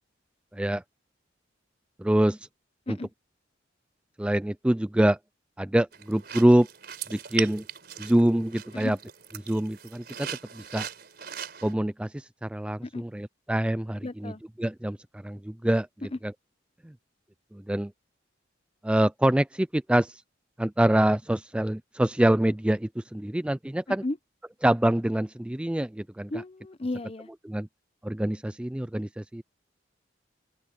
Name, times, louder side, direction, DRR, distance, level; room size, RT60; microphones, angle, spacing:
voice 1, 2.0-2.4 2.9-3.0 4.2-5.2 5.6-6.7 7.1-7.6 8.0-9.0 9.5-10.3 10.5-10.9 11.6-14.3 14.6-15.9 16.2-16.3 16.8-16.9 17.5-17.9 18.8-20.2 20.6-24.0 24.6-26.3 27.5-27.7 28.0-29.4, right 1 dB, 5° right, 0.3 m, -25 dB
sound 1, 5.9-11.7, right 9 dB, 55° right, 4.4 m, -39 dB
voice 2, 14.0-14.4 16.1-16.2 23.9-24.2 26.3-27.3, left 2 dB, 30° left, 0.7 m, -34 dB
open air
head